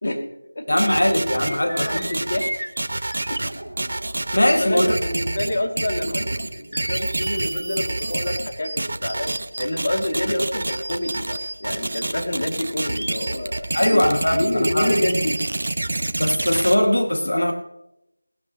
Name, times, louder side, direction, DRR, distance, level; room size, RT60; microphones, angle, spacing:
voice 1, 0.7-2.0 4.3-5.0 13.7-15.0 16.2-17.5, left 1 dB, 85° left, 2.4 m, -20 dB
sound 1, 0.8-16.7, right 2 dB, 55° right, 1.3 m, -28 dB
sound 2, 1.4-5.7 6.0-11.5 11.8-15.5, right 1 dB, 85° right, 2.4 m, -35 dB
voice 2, 1.6-2.5 3.3-3.5 4.6-14.1 14.3-15.3 17.2-17.3, left 1 dB, 45° left, 2.9 m, -27 dB
21.0 x 13.0 x 3.1 m
figure-of-eight pair, 175°, 0 cm